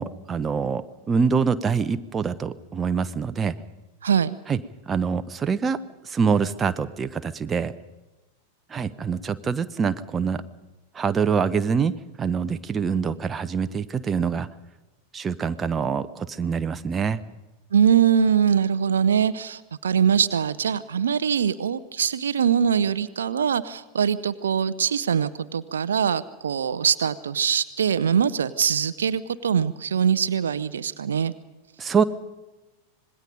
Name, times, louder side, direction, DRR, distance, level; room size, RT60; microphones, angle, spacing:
voice 1, 0.0-3.6 4.5-4.6 4.9-7.7 8.7-10.4 10.9-14.5 15.1-17.2 31.8-32.0, right 6 dB, 20° right, 11 dB, 0.8 m, -25 dB
voice 2, 4.0-4.4 17.7-31.3, right 7 dB, 65° right, 15 dB, 0.6 m, -22 dB
26.0 x 20.0 x 5.2 m, 1.1 s
figure-of-eight pair, 90°, 0 cm